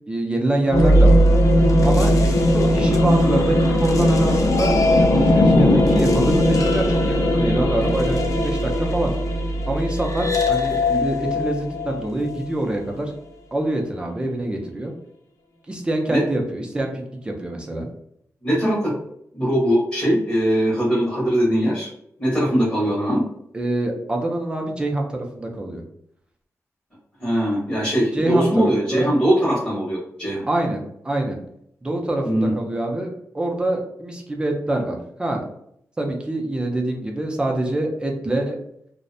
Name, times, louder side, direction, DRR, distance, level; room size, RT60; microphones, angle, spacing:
voice 1, 0.1-1.2 1.8-9.1 9.7-13.1 13.5-14.9 15.7-16.9 17.2-17.9 23.5-25.8 28.1-29.1 30.5-30.8 31.0-31.4 31.8-33.1 33.3-35.4 36.0-38.6, right 1 dB, 15° right, 1 dB, 0.4 m, -25 dB
sound 1, 0.7-12.5, left 1 dB, 65° left, 0.4 m, -18 dB
voice 2, 18.4-18.9 19.3-21.9 22.2-23.2 27.2-30.4 32.2-32.5, equal, 25° left, -6 dB, 0.8 m, -21 dB
2.5 x 2.0 x 2.5 m, 0.72 s
wide cardioid pair, 170°, 6 cm